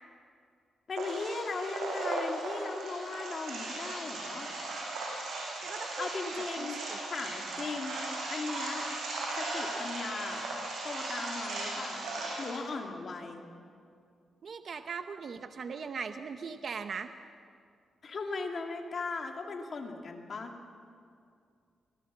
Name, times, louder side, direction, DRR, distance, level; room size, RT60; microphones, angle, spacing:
voice 1, 0.9-4.5 6.0-6.8 7.1-8.0 8.3-8.9 9.4-10.5 10.8-13.4 18.0-20.6, left 4 dB, 50° left, 2 dB, 2.7 m, -38 dB
sound 1, 1.0-12.6, right 2 dB, 90° right, 6.9 m, -37 dB
voice 2, 5.6-7.0 14.4-17.1, right 5 dB, 55° right, 8 dB, 0.8 m, -40 dB
24.5 x 17.5 x 7.5 m, 2.3 s
cardioid pair, 105°, 0 cm